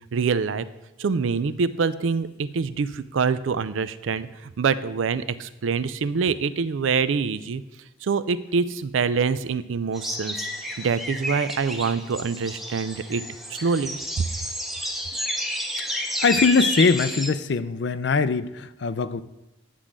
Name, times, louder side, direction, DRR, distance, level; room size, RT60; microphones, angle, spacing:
voice 1, 0.1-0.6 1.0-7.6 8.0-13.2 13.5-14.2, right 5 dB, 80° right, 14 dB, 0.4 m, -25 dB
sound 1, 9.9-17.3, equal, ahead, 0.7 m, -30 dB
voice 2, 16.0-19.2, left 4 dB, 60° left, 13 dB, 0.4 m, -22 dB
9.9 x 3.7 x 7.1 m, 0.99 s
head